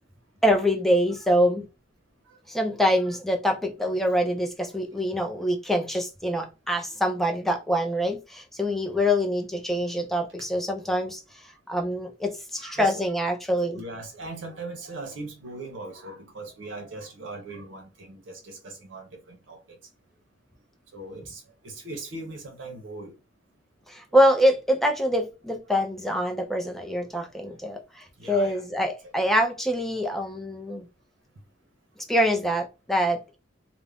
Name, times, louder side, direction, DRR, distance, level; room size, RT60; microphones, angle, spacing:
voice 1, 0.4-1.7 2.5-11.2 11.7-13.8 23.9-30.8 32.1-33.4, equal, ahead, 0.4 m, -25 dB
voice 2, 12.6-12.9 13.7-19.8 20.9-23.1 28.2-28.6 29.9-30.0, right 2 dB, 85° right, 0.7 m, -40 dB
2.3 x 2.0 x 3.3 m
head